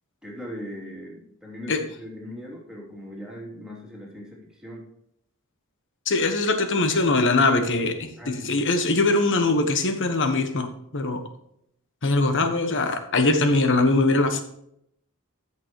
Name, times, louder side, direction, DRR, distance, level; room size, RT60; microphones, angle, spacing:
voice 1, 0.2-4.9 8.2-8.6, equal, 5° right, -4 dB, 3.1 m, -39 dB
voice 2, 6.1-10.7 10.9-11.2 12.0-14.4, left 2 dB, 55° left, 7 dB, 1.4 m, -22 dB
14.0 x 6.9 x 3.2 m, 0.73 s
head